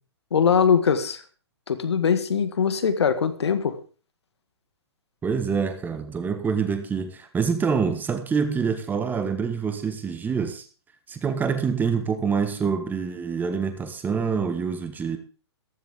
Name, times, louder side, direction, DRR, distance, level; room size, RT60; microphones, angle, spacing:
voice 1, 0.3-1.2 1.7-3.8, left 6 dB, 70° left, 10 dB, 1.9 m, -21 dB
voice 2, 5.2-10.6 11.1-15.2, right 6 dB, 10° right, 8 dB, 1.5 m, -26 dB
14.5 x 14.5 x 3.7 m, 0.38 s
figure-of-eight pair, 125°, 15 cm